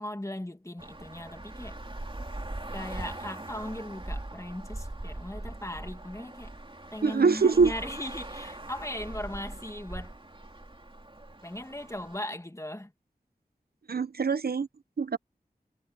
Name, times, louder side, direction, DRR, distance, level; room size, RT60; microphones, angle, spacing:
voice 1, 0.0-1.8 2.7-6.5 6.9-10.1 11.4-12.9, left 1 dB, 20° left, 1.9 m, -38 dB
Traffic noise roadway noise, 0.8-12.2, right 1 dB, 35° right, 2.8 m, -41 dB
voice 2, 7.0-7.7 13.9-14.7 15.0-15.2, right 5 dB, 80° right, 0.7 m, -23 dB
wide cardioid pair, 45°, 16 cm